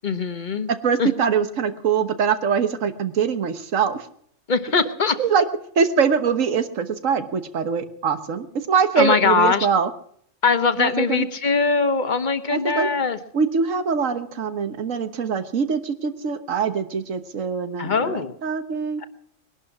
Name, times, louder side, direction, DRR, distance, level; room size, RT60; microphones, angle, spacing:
voice 1, 0.0-0.7 1.0-1.1 4.5-5.1 9.0-9.7 10.4-13.2 17.8-18.3, left 5 dB, 40° left, 10 dB, 1.2 m, -21 dB
voice 2, 0.8-4.1 5.2-5.4 5.7-9.9 10.8-11.3 12.5-12.9 13.3-19.0, right 6 dB, 80° right, 11 dB, 1.6 m, -23 dB
21.0 x 11.5 x 6.0 m, 0.65 s
omnidirectional pair, 1.3 m